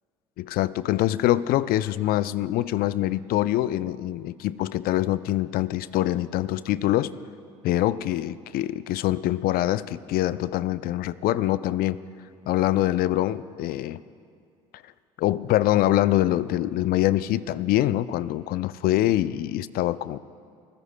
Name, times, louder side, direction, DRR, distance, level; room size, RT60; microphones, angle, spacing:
voice 1, 0.4-7.1 7.6-12.0 12.5-14.0 15.2-20.2, left 14 dB, 60° left, 16 dB, 0.5 m, -24 dB
25.0 x 15.5 x 2.2 m, 2.3 s
hypercardioid pair, 60°, 17 cm